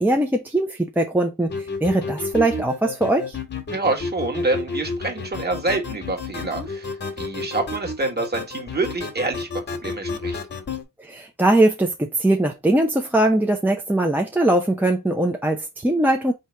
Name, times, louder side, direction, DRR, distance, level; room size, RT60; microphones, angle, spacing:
voice 1, 0.0-3.4 11.0-16.3, right 1 dB, 5° right, 0.6 m, -21 dB
sound 1, 1.5-10.8, left 3 dB, 35° left, 1.3 m, -30 dB
voice 2, 3.7-9.5 9.8-10.4, right 2 dB, 30° right, 1.6 m, -27 dB
4.0 x 2.9 x 4.4 m
cardioid pair, 105°, 33 cm